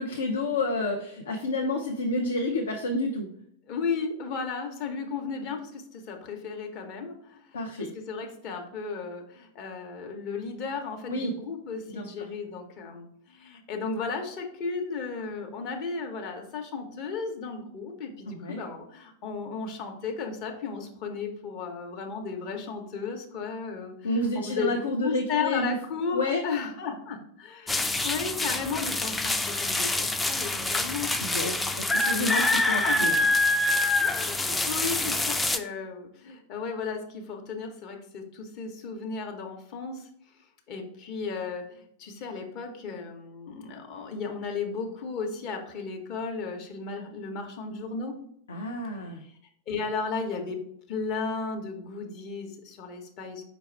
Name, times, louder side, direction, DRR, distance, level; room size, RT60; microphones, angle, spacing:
voice 1, 0.0-3.3 7.5-7.9 11.1-11.3 11.9-12.1 18.3-18.6 24.0-25.7 26.1-26.4 31.2-33.1 48.5-49.2, left 2 dB, 70° left, 2 dB, 0.5 m, -29 dB
voice 2, 3.7-24.7 25.0-31.1 32.8-33.3 34.0-40.1 40.7-48.1 49.1-49.3 49.7-53.4, left 5 dB, 40° left, 2 dB, 0.8 m, -34 dB
sound 1, 27.7-35.6, left 2 dB, 10° left, 0.3 m, -26 dB
5.0 x 2.3 x 4.3 m, 0.69 s
figure-of-eight pair, 90°, 0 cm